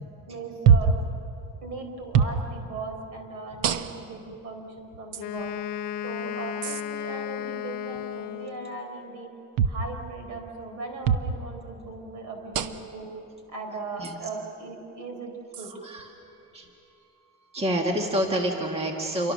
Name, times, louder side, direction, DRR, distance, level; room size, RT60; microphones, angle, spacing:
voice 1, 0.3-0.9 1.6-5.5 6.0-9.3 9.6-13.1 13.5-15.7, right 3 dB, 65° right, 4 dB, 4.1 m, -38 dB
sound 1, 0.7-1.0 2.1-2.4 3.6-4.1 5.1-5.2 6.6-6.8 9.6-9.8 11.0-11.3 12.5-12.9 14.0-14.1 15.5-15.7, right 7 dB, 85° right, 1.1 m, -23 dB
Wind instrument woodwind instrument, 5.2-8.9, left 10 dB, 90° left, 0.8 m, -34 dB
voice 2, 17.5-19.3, equal, 20° right, 2 dB, 1.6 m, -27 dB
28.0 x 23.5 x 6.4 m, 2.9 s
cardioid pair, 160°, 32 cm